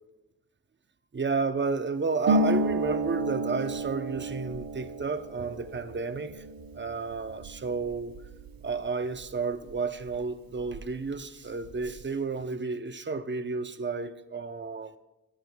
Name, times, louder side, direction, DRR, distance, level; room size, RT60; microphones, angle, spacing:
voice 1, 1.1-6.4 6.7-8.2 8.6-15.0, right 4 dB, 30° right, 0.7 m, -31 dB
Harp, 2.2-9.7 10.0-11.1 11.4-12.0, right 2 dB, 75° right, 0.8 m, -32 dB
22.0 x 8.9 x 2.3 m
cardioid pair, 65°, 35 cm